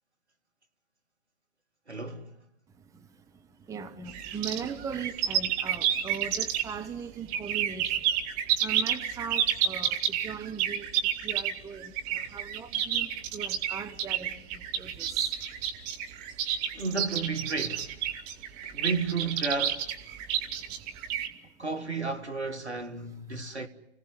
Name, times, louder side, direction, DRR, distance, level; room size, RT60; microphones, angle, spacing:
voice 1, 1.9-2.4 12.2-12.3 16.7-18.0 18.7-19.9 21.6-23.7, right 4 dB, 90° right, 1.9 m, -32 dB
voice 2, 3.7-7.9 8.6-10.9 11.2-11.9 12.3-15.2, right 6 dB, 10° right, 1.0 m, -39 dB
sound 1, 4.1-6.9 7.3-21.3, right 9 dB, 35° right, 1.8 m, -30 dB
25.5 x 17.0 x 9.8 m
figure-of-eight pair, 115°, 33 cm